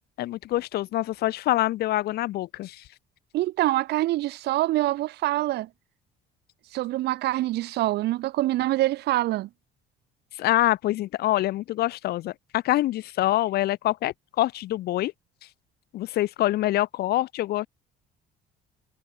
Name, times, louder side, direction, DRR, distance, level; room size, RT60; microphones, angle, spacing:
voice 1, 0.2-2.8 10.4-15.1 15.9-17.7, left 15 dB, 70° left, 1.0 m, -25 dB
voice 2, 3.3-5.7 6.7-9.5, right 16 dB, 75° right, 2.1 m, -25 dB
cardioid pair, 110°, 17 cm